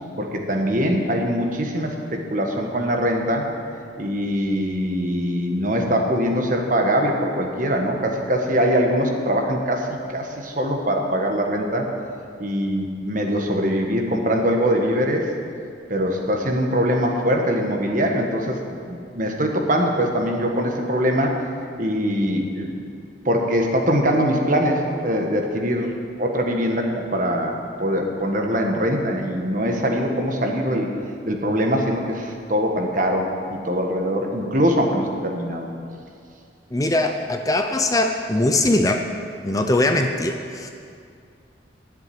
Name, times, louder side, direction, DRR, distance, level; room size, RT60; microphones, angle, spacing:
voice 1, 0.2-3.5 4.0-11.9 12.4-15.3 15.9-21.4 21.8-22.7 23.2-25.9 26.2-30.9 31.2-35.7 39.8-39.9, equal, 45° right, 2 dB, 1.4 m, -22 dB
voice 2, 36.7-39.1 39.4-40.7, left 2 dB, 20° left, 5 dB, 0.5 m, -21 dB
10.5 x 7.8 x 9.4 m, 2.3 s
head